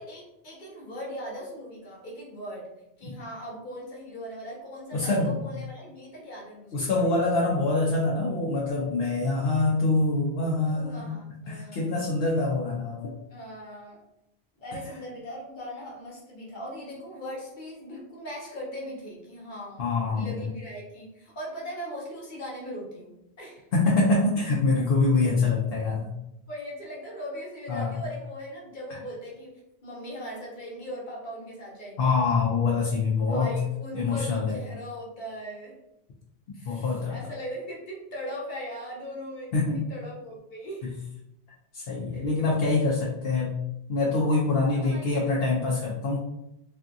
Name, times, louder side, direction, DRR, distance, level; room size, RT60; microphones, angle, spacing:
voice 1, 0.0-2.7 3.0-7.4 10.7-12.0 13.3-14.0 14.6-23.7 26.5-32.1 33.3-35.8 36.5-40.9 42.1-42.3 44.7-45.4, equal, 50° left, -3 dB, 1.0 m, -39 dB
voice 2, 4.9-5.3 6.7-11.1 11.5-13.2 19.8-20.4 23.7-26.1 27.7-27.9 32.0-33.6 33.9-34.6 36.6-37.2 39.5-39.8 40.8-40.9 41.7-43.6 43.9-46.2, left 3 dB, 70° left, -3 dB, 0.7 m, -25 dB
2.5 x 2.3 x 2.6 m, 0.84 s
omnidirectional pair, 1.1 m